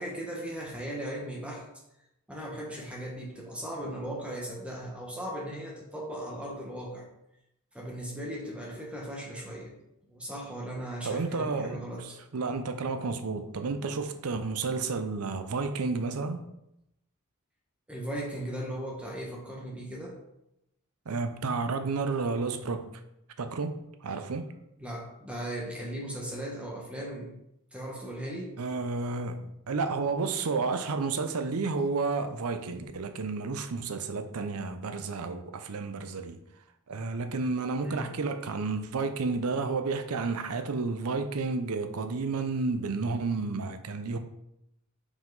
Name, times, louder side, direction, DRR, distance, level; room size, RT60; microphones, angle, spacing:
voice 1, 0.0-1.6 2.3-7.1 7.7-9.7 10.1-12.2 17.9-20.2 24.8-27.3 27.7-28.5 37.8-38.1, right 1 dB, 5° right, 1.1 m, -37 dB
voice 2, 11.0-16.4 21.1-22.9 23.4-24.5 28.6-36.4 36.9-44.2, right 4 dB, 85° right, 0.6 m, -31 dB
5.6 x 5.0 x 3.9 m
head